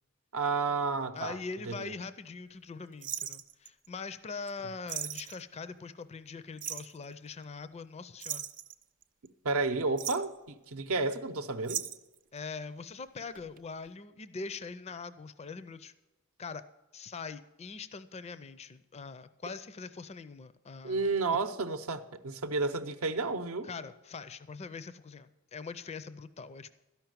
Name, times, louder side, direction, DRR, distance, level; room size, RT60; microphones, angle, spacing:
voice 1, 0.3-1.4 1.7-1.9 9.4-11.9 20.8-23.7, right 3 dB, 70° right, 0.7 m, -31 dB
voice 2, 1.1-8.5 12.3-15.9 16.4-16.6 16.9-21.1 23.6-26.7, left 4 dB, 30° left, 0.4 m, -42 dB
sound 1, 3.0-3.9 4.5-4.6 4.9-5.4 6.6-7.0 8.2-9.3 9.8-10.4 11.6-12.2 13.2-13.6 13.9-14.0, right 10 dB, 40° right, 0.5 m, -38 dB
12.5 x 5.8 x 9.0 m
head